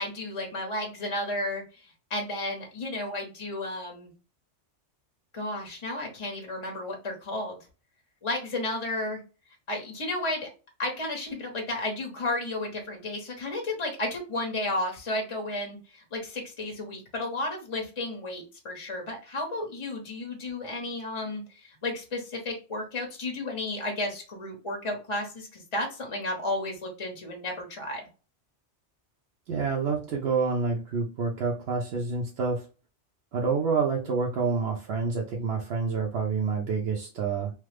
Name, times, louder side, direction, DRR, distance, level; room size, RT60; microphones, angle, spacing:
voice 1, 0.0-4.1 5.3-7.6 8.2-9.2 9.7-10.5 10.8-28.0, left 2 dB, 30° left, 2 dB, 0.7 m, -33 dB
voice 2, 29.5-32.6 33.3-37.5, right 5 dB, 65° right, -1 dB, 0.8 m, -28 dB
3.1 x 2.0 x 3.2 m, 0.35 s
omnidirectional pair, 1.2 m